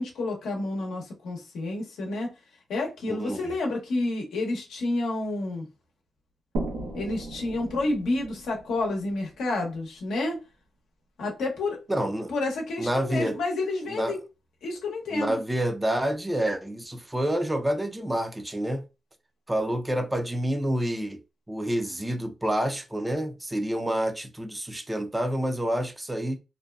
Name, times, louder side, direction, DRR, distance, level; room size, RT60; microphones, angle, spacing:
voice 1, 0.0-2.3 2.7-5.7 6.9-10.4 11.2-11.8 12.3-14.2 14.6-15.4, left 2 dB, 85° left, 0.7 m, -29 dB
voice 2, 3.1-3.5 11.9-12.3 12.8-13.4 13.9-14.1 15.1-18.9 19.5-21.2 21.5-26.4, right 1 dB, 10° right, 0.4 m, -28 dB
sound 1, 6.5-10.1, right 2 dB, 90° right, 0.8 m, -37 dB
2.6 x 2.2 x 2.2 m
cardioid pair, 75°, 0 cm